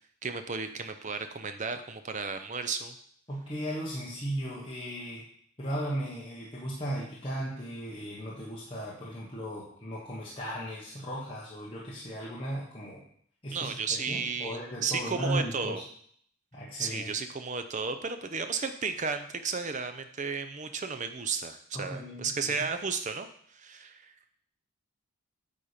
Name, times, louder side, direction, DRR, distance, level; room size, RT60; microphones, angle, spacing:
voice 1, 0.2-2.9 13.5-15.8 16.8-24.0, right 5 dB, 35° right, 8 dB, 0.5 m, -33 dB
voice 2, 3.3-5.3 5.6-13.0 13.4-13.7 14.1-15.8 16.5-17.1 21.7-22.5, equal, 25° left, -6 dB, 1.2 m, -36 dB
8.8 x 4.2 x 5.0 m, 0.62 s
head